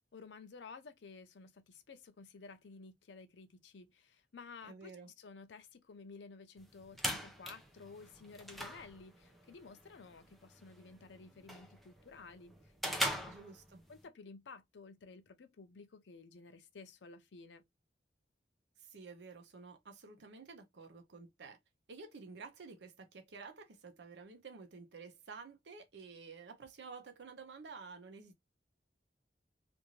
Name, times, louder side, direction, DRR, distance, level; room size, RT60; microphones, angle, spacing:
voice 1, 0.1-12.5 12.8-13.4 13.9-17.6, left 4 dB, 90° left, 0.5 m, -54 dB
voice 2, 4.6-5.1 13.3-13.8 18.8-21.6 21.9-28.4, right 4 dB, 75° right, 0.7 m, -51 dB
sound 1, 6.6-14.1, equal, ahead, 0.5 m, -42 dB
2.6 x 2.5 x 3.0 m
head